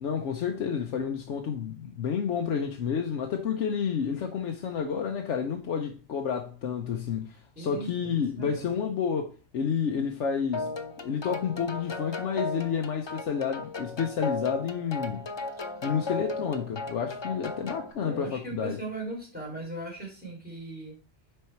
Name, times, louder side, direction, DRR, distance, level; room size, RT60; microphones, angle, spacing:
voice 1, 0.0-10.7 11.0-15.3 15.8-18.8, left 7 dB, 85° left, 1.1 m, -30 dB
voice 2, 7.5-8.8 17.9-21.0, right 1 dB, 10° right, 3.1 m, -38 dB
sound 1, 10.5-17.9, left 3 dB, 30° left, 0.5 m, -35 dB
6.7 x 4.4 x 4.5 m
omnidirectional pair, 1.2 m